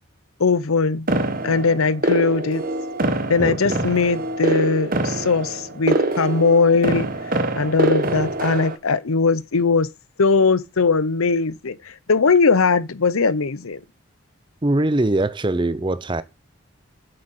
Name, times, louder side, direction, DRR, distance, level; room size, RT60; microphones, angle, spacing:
voice 1, 0.4-1.1 1.4-2.6 3.3-9.9 10.2-13.8, left 4 dB, 90° left, 0.8 m, -20 dB
sound 1, 1.1-8.8, right 2 dB, 40° right, 1.2 m, -24 dB
voice 2, 3.4-3.9 14.6-16.2, right 2 dB, 20° right, 0.6 m, -22 dB
7.7 x 6.6 x 7.4 m
head